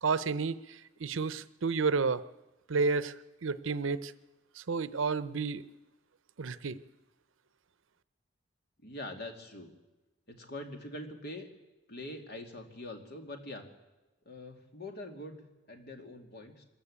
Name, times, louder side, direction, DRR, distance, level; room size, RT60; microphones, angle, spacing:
voice 1, 0.0-2.2 2.7-3.1 3.4-4.1 4.6-5.6 6.4-6.8, right 4 dB, 80° right, 15 dB, 0.7 m, -31 dB
voice 2, 8.8-9.7 10.3-11.5 11.9-13.6 14.3-16.6, left 1 dB, 55° left, 4 dB, 2.5 m, -44 dB
23.5 x 14.0 x 8.6 m, 1.1 s
head